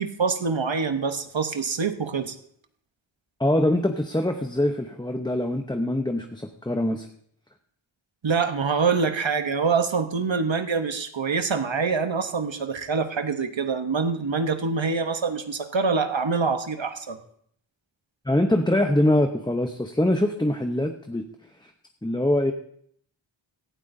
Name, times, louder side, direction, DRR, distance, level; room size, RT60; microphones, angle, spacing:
voice 1, 0.0-2.4 8.2-17.2, right 5 dB, 70° right, 8 dB, 1.0 m, -25 dB
voice 2, 3.4-7.1 18.3-21.3 21.6-21.7 22.0-22.5, left 1 dB, 10° left, 5 dB, 0.7 m, -23 dB
17.5 x 12.5 x 2.6 m, 0.67 s
wide cardioid pair, 40°, 47 cm